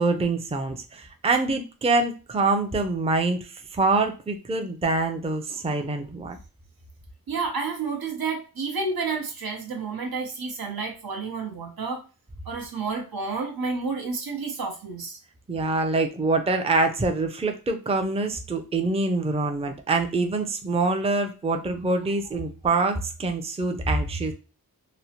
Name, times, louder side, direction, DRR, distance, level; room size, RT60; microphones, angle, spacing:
voice 1, 0.0-6.4 15.5-24.3, right 3 dB, 15° right, 5 dB, 0.4 m, -25 dB
voice 2, 7.3-12.0 12.5-15.2, right 4 dB, 80° right, 1 dB, 0.9 m, -30 dB
3.0 x 2.0 x 2.8 m, 0.33 s
wide cardioid pair, 50°, 36 cm